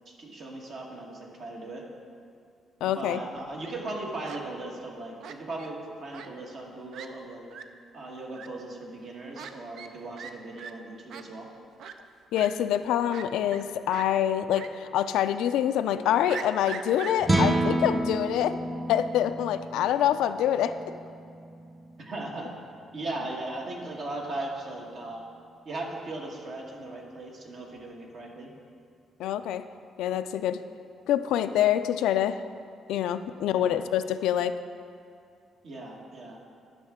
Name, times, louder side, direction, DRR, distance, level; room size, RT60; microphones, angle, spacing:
voice 1, 0.1-1.9 2.8-7.5 7.9-11.5 22.0-22.5 22.9-25.2 25.6-28.5 33.5-33.8 35.6-36.4, right 2 dB, 60° right, -1 dB, 1.3 m, -38 dB
voice 2, 2.8-3.2 12.3-18.6 18.9-20.7 29.2-29.6 30.0-30.6 31.1-32.4 32.9-34.5, left 10 dB, 90° left, 11 dB, 0.3 m, -26 dB
Fowl, 3.4-3.8 4.2-4.4 5.2-5.7 6.1-6.3 6.6-6.7 6.9-7.1 7.5-7.6 8.3-8.5 9.3-9.5 9.8-9.9 10.2-10.3 10.6-10.7 11.1-11.2 11.8-11.9 12.3-12.5 13.1-13.6 13.9-14.1 14.5-14.7 15.0-15.1 16.3-17.5, right 7 dB, 75° right, 0.4 m, -40 dB
sound 1, 17.2-23.6, right 1 dB, 15° right, 0.6 m, -31 dB
11.5 x 5.7 x 3.6 m, 2.4 s
cardioid pair, 90°, 0 cm